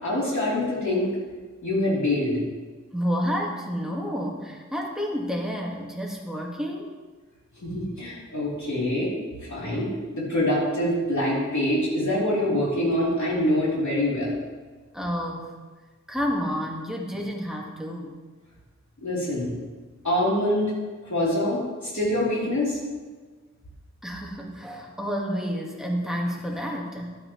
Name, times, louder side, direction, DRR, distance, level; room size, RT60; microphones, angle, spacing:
voice 1, 0.0-1.1 1.6-2.4 7.6-9.1 9.4-9.9 10.1-14.4 19.0-19.5 20.0-20.7 21.0-22.8, left 1 dB, 75° left, -7 dB, 3.3 m, -25 dB
voice 2, 2.9-6.9 14.9-15.5 16.1-18.2 24.0-27.2, equal, ahead, -1 dB, 1.6 m, -30 dB
12.5 x 7.9 x 3.1 m, 1.4 s
wide cardioid pair, 50°, 29 cm